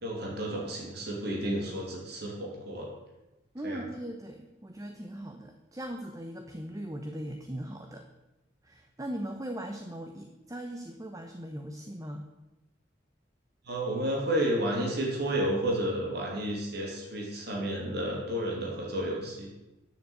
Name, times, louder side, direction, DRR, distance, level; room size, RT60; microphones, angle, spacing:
voice 1, 0.0-2.9 3.6-3.8 13.6-19.5, right 1 dB, 60° right, -2 dB, 2.8 m, -31 dB
voice 2, 3.5-8.1 8.6-12.3, right 1 dB, 20° right, 5 dB, 0.8 m, -39 dB
9.5 x 7.1 x 7.9 m, 1.0 s
head